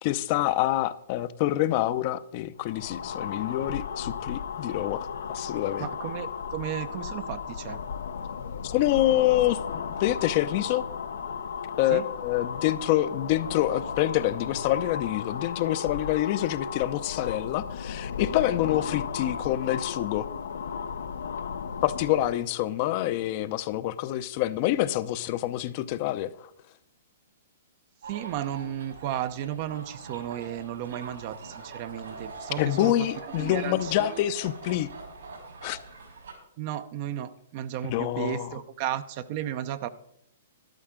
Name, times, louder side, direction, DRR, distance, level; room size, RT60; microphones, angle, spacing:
voice 1, 0.0-5.9 8.6-10.9 11.8-20.3 21.8-26.5 32.6-34.9 35.6-35.8 37.8-38.5, left 14 dB, 45° left, 14 dB, 0.7 m, -26 dB
sound 1, 2.6-22.5, left 6 dB, 75° left, 0.8 m, -35 dB
voice 2, 5.8-7.8 11.9-12.0 28.1-32.9 33.3-34.2 36.6-39.9, right 11 dB, 45° right, 11 dB, 0.7 m, -34 dB
sound 2, 28.0-36.3, right 3 dB, 80° right, 5.8 m, -43 dB
13.0 x 11.5 x 3.8 m, 0.74 s
hypercardioid pair, 130°, 0 cm